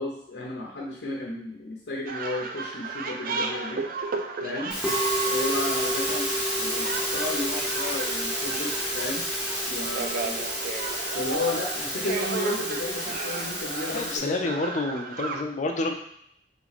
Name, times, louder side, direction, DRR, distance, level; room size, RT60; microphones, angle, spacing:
voice 1, 0.0-3.9 4.4-4.8 5.3-6.3 6.6-9.3 9.7-10.5 11.1-14.5, left 2 dB, 80° left, -3 dB, 0.7 m, -33 dB
sound 1, 2.1-15.4, right 4 dB, 55° right, 0.4 m, -35 dB
Musical instrument, 4.7-14.2, equal, 5° right, 1.1 m, -29 dB
voice 2, 13.9-15.9, left 2 dB, 45° left, 4 dB, 0.5 m, -28 dB
3.4 x 3.1 x 4.0 m, 0.72 s
head